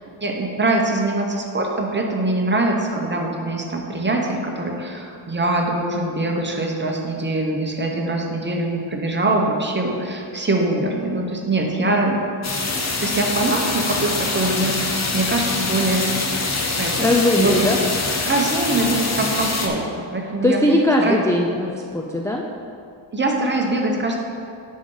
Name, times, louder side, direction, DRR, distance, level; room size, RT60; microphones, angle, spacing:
voice 1, 0.2-12.2 13.0-16.2 16.8-17.1 17.4-17.6 18.2-19.8 20.1-20.6 21.0-21.2 23.1-24.2, right 2 dB, 20° right, 0 dB, 1.0 m, -23 dB
sound 1, 12.4-19.7, left 3 dB, 35° left, 0.8 m, -24 dB
voice 2, 17.0-17.8 20.4-22.4, left 1 dB, 5° left, 0 dB, 0.3 m, -19 dB
9.5 x 5.3 x 3.9 m, 2.4 s
wide cardioid pair, 120°, 49 cm